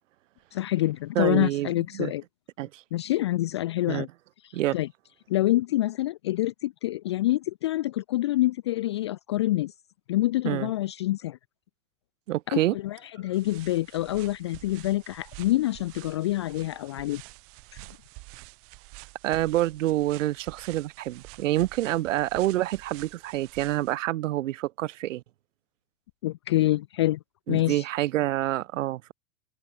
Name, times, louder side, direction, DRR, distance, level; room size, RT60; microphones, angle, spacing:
voice 1, 0.5-2.2 2.9-4.1 4.4-4.9 5.3-9.7 10.1-11.4 12.5-17.2 26.2-27.2 27.5-27.8, left 16 dB, 20° left, 0.4 m, -26 dB
voice 2, 1.1-2.1 2.6-2.8 3.9-4.1 4.5-4.8 10.4-10.7 12.3-12.7 19.2-25.2 27.5-29.1, right 15 dB, 65° right, 5.1 m, -27 dB
sound 1, 13.3-24.0, right 25 dB, 35° right, 5.9 m, -48 dB
supercardioid pair, 175°, 41 cm